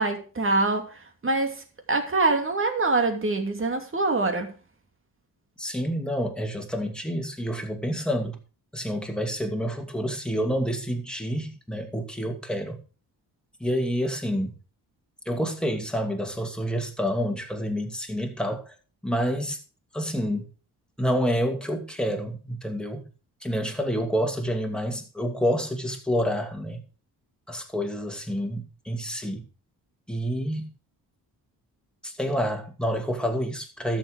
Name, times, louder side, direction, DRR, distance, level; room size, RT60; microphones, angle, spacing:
voice 1, 0.0-1.6 1.9-4.5, right 3 dB, 35° right, 2.6 m, -24 dB
voice 2, 5.6-8.4 8.7-12.8 13.6-14.5 15.3-18.7 19.0-19.6 19.9-20.5 21.0-23.1 23.4-26.8 27.5-29.4 30.1-30.7 32.0-34.0, equal, ahead, 2.5 m, -28 dB
13.0 x 7.4 x 4.8 m
cardioid pair, 105°, 38 cm